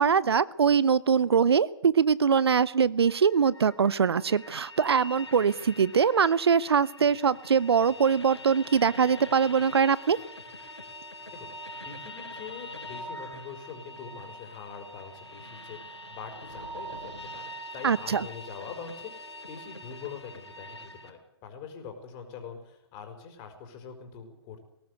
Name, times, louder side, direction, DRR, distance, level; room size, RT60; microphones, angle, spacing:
voice 1, 0.0-10.2 17.8-18.3, right 6 dB, 70° right, 21 dB, 0.8 m, -23 dB
sound 1, 3.0-21.1, equal, 90° left, 5.3 m, -44 dB
voice 2, 11.8-24.6, left 6 dB, 30° left, 6 dB, 4.9 m, -44 dB
20.0 x 18.0 x 8.2 m, 0.82 s
figure-of-eight pair, 125°, 14 cm